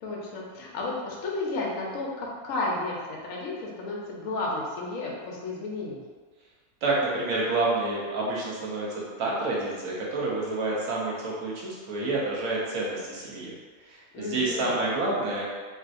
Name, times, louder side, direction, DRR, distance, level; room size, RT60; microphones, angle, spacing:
voice 1, 0.0-6.0 14.1-14.8, left 2 dB, 70° left, -3 dB, 1.0 m, -32 dB
voice 2, 6.8-13.5 13.8-15.4, right 2 dB, 70° right, -5 dB, 1.1 m, -28 dB
3.1 x 2.7 x 2.4 m, 1.5 s
omnidirectional pair, 1.5 m